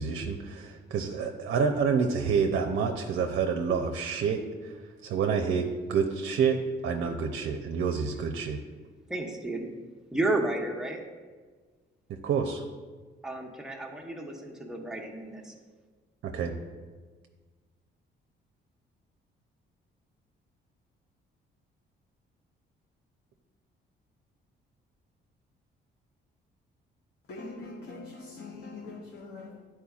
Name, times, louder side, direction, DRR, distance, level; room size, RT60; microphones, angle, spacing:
voice 1, 0.0-4.8 5.0-8.6 12.1-12.6 16.2-16.5, right 6 dB, 70° right, 0.6 m, -28 dB
voice 2, 9.1-9.7 10.1-11.0 13.2-15.5, right 2 dB, 5° right, 0.9 m, -32 dB
voice 3, 27.3-29.6, left 3 dB, 55° left, 0.9 m, -42 dB
9.9 x 4.4 x 2.4 m
cardioid pair, 90°, 20 cm